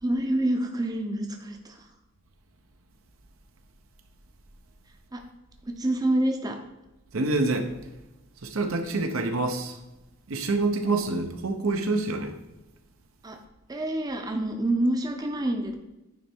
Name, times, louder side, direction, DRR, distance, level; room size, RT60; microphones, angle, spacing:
voice 1, 0.0-1.9 5.1-5.2 5.6-6.6 13.2-13.4 13.7-15.8, right 1 dB, 20° right, 4 dB, 0.6 m, -27 dB
voice 2, 7.1-7.7 8.4-9.8 10.3-12.4, right 3 dB, 70° right, 5 dB, 0.8 m, -26 dB
9.4 x 3.3 x 4.4 m, 1.0 s
head